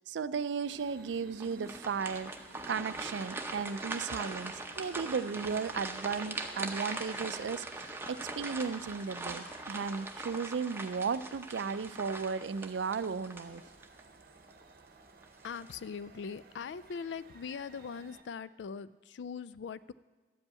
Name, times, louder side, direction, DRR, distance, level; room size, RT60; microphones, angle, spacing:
voice 1, 0.1-2.3 2.7-13.6, right 5 dB, 90° right, 15 dB, 0.4 m, -35 dB
sound 1, 0.6-18.2, right 2 dB, 55° right, 0.8 m, -57 dB
sound 2, 1.4-14.0 14.5-14.6 15.2-15.7, right 2 dB, 15° right, 0.7 m, -41 dB
voice 2, 15.4-19.9, left 6 dB, 85° left, 17 dB, 0.4 m, -41 dB
12.0 x 5.4 x 8.3 m, 1.3 s
head